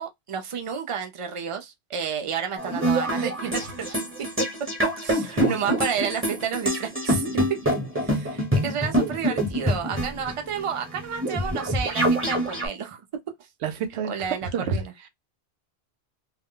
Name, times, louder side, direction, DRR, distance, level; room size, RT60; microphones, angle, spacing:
voice 1, 0.0-4.0 4.4-4.5 5.0-7.2 8.0-13.0 14.1-14.8, right 7 dB, 45° right, 0.4 m, -31 dB
sound 1, 2.6-12.7, right 1 dB, 15° right, 0.8 m, -26 dB
voice 2, 13.6-15.1, right 6 dB, 85° right, 0.9 m, -30 dB
2.3 x 2.1 x 3.6 m
omnidirectional pair, 1.1 m